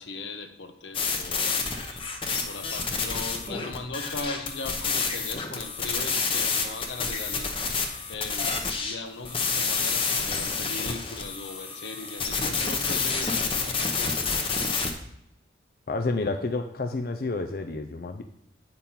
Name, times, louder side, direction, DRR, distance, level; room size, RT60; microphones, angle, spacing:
voice 1, 0.0-1.6 2.4-14.2 14.7-15.0, left 3 dB, 85° left, 7 dB, 0.9 m, -39 dB
sound 1, 0.9-9.0 9.2-14.9, left 4 dB, 30° left, 0.8 m, -29 dB
voice 2, 15.9-18.2, left 3 dB, 55° left, 5 dB, 0.5 m, -29 dB
8.9 x 5.4 x 4.3 m, 0.77 s
head